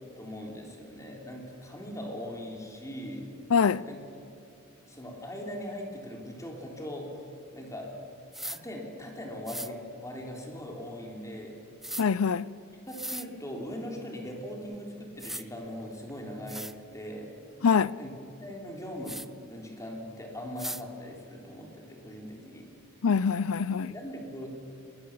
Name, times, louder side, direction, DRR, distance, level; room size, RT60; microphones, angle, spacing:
voice 1, 0.2-3.3 3.8-4.0 4.9-7.2 7.5-7.9 8.4-11.6 12.9-17.4 18.0-18.1 18.4-19.2 19.5-22.7 23.8-24.5, equal, 15° left, 3.4 m, -40 dB
voice 2, 3.5-3.8 12.0-12.5 17.6-17.9 23.0-23.9, left 6 dB, 80° left, 0.5 m, -24 dB
sound 1, 8.3-8.6 9.4-9.7 11.8-12.0 12.9-13.3 14.7-14.8 15.2-15.4 16.1-16.2 16.5-16.7 19.0-19.3 20.6-20.8, right 1 dB, ahead, 0.4 m, -37 dB
23.0 x 19.5 x 7.3 m
head